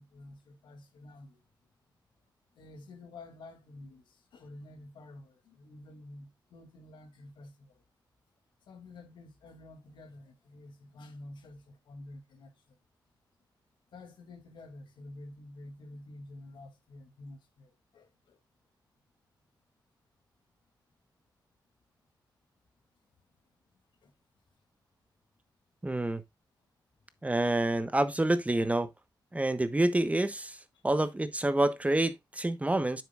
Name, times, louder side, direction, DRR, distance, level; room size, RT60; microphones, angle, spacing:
voice 1, 0.0-1.4 2.5-7.8 8.7-12.7 13.9-18.4 24.0-24.1 31.0-31.1, left 2 dB, 90° left, 2.6 m, -50 dB
voice 2, 25.8-26.2 27.2-28.9 29.3-30.6 30.8-33.0, right 1 dB, 15° right, 1.1 m, -27 dB
9.5 x 7.5 x 2.4 m
cardioid pair, 75°, 8 cm